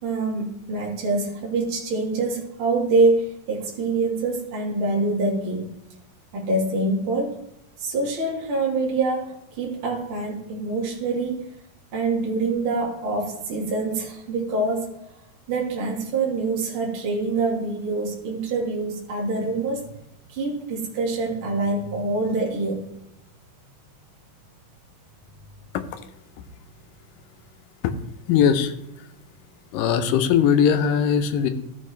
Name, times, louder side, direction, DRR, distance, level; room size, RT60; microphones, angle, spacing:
voice 1, 0.0-5.8 6.3-7.4 7.8-11.5 11.9-14.9 15.5-19.8 20.3-22.9, right 3 dB, 45° right, -2 dB, 2.3 m, -25 dB
voice 2, 28.3-29.1 29.7-31.5, left 8 dB, 90° left, 9 dB, 2.5 m, -20 dB
14.0 x 6.2 x 3.3 m, 0.86 s
omnidirectional pair, 3.9 m